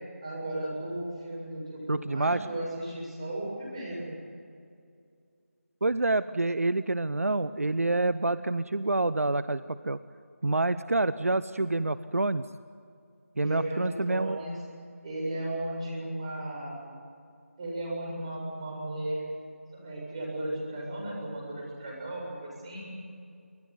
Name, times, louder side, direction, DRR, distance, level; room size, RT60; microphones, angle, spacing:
voice 1, 0.2-4.1 13.3-14.6 15.0-16.8 17.6-19.3 19.7-22.9, right 1 dB, 25° right, -3 dB, 7.3 m, -35 dB
voice 2, 1.9-2.5 5.8-10.0 10.4-12.4 13.4-14.4, right 2 dB, 75° right, 14 dB, 0.8 m, -27 dB
26.0 x 17.0 x 9.6 m, 2.3 s
figure-of-eight pair, 170°, 8 cm